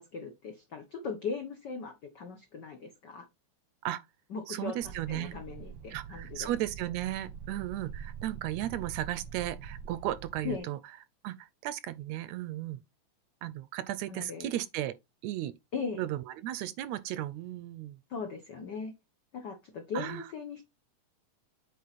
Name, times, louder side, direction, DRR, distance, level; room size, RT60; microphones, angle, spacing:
voice 1, 0.0-3.3 4.3-6.5 10.4-10.7 14.1-14.5 15.7-16.0 18.1-18.9 19.3-20.6, left 5 dB, 75° left, 0.9 m, -39 dB
voice 2, 4.5-5.4 5.9-10.8 11.2-12.8 13.4-14.9 15.2-15.5 15.9-18.0 19.9-20.2, right 13 dB, 80° right, 1.7 m, -35 dB
sound 1, 4.8-10.6, right 7 dB, 60° right, 1.2 m, -44 dB
8.5 x 3.9 x 4.1 m
omnidirectional pair, 3.4 m